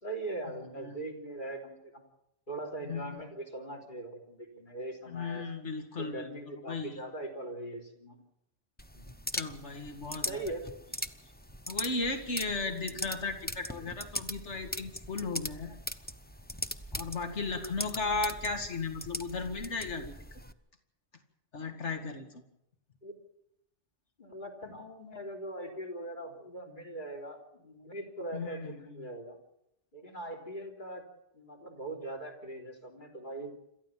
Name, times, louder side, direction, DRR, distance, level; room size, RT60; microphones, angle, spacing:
voice 1, 0.0-2.0 2.5-5.5 6.0-8.2 8.9-9.2 10.2-10.8 12.9-13.2 18.4-18.5 23.0-23.1 24.2-29.4 29.9-31.0 31.3-33.5, right 1 dB, 40° left, 1 dB, 4.0 m, -41 dB
voice 2, 2.8-3.2 5.1-7.0 9.3-10.4 11.7-15.8 16.9-20.4 21.5-22.3 28.3-28.8, left 3 dB, 70° left, 6 dB, 2.5 m, -36 dB
sound 1, 8.8-20.5, left 1 dB, 10° left, 0.8 m, -40 dB
27.5 x 13.5 x 7.5 m, 0.81 s
omnidirectional pair, 1.2 m